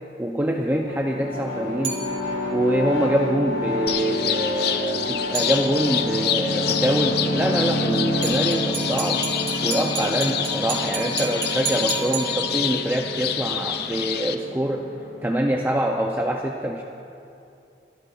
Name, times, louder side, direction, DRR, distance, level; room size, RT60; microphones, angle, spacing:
voice 1, 0.2-2.0 2.5-9.3 9.6-14.9 15.2-16.8, right 1 dB, 10° right, 1 dB, 0.5 m, -25 dB
sound 1, 0.7-16.1, left 1 dB, 75° left, 1.4 m, -29 dB
sound 2, 1.8-2.6 5.3-6.1 8.2-12.9, right 5 dB, 35° right, 2.7 m, -32 dB
sound 3, 3.9-14.4, left 10 dB, 60° left, 0.5 m, -27 dB
27.5 x 11.5 x 2.4 m, 2.6 s
head